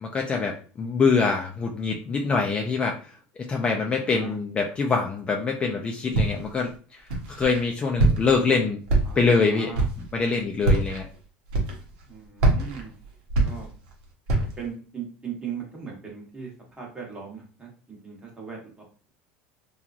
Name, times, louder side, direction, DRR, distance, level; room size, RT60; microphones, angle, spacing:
voice 1, 0.1-3.0 3.5-6.7 7.4-8.8 9.2-9.7 10.1-11.1, left 4 dB, 20° left, 1 dB, 0.4 m, -24 dB
voice 2, 3.7-4.4 9.0-9.9 12.0-12.9 13.4-13.7 14.3-19.1, right 6 dB, 15° right, -1 dB, 1.0 m, -39 dB
Walk footsteps, 6.1-6.6 7.1-7.6 8.0-8.5 8.9-9.4 9.7-10.1 10.6-11.0 11.5-12.0 12.4-13.9 14.3-14.7, right 2 dB, 75° right, 0.8 m, -23 dB
2.9 x 2.3 x 2.4 m, 0.39 s
supercardioid pair, 130°, 5 cm